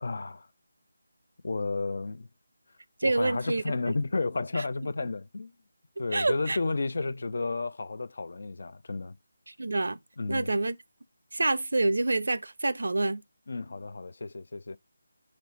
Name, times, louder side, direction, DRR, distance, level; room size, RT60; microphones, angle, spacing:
voice 1, 0.0-0.5 1.4-2.3 3.0-5.5 6.0-9.2 10.2-10.5 13.5-14.8, left 3 dB, 50° left, 0.5 m, -32 dB
voice 2, 3.0-3.8 4.5-4.9 6.1-6.6 9.5-10.0 10.3-10.8 11.3-13.2, right 2 dB, 60° right, 0.6 m, -27 dB
6.1 x 4.4 x 4.0 m
figure-of-eight pair, 155°, 0 cm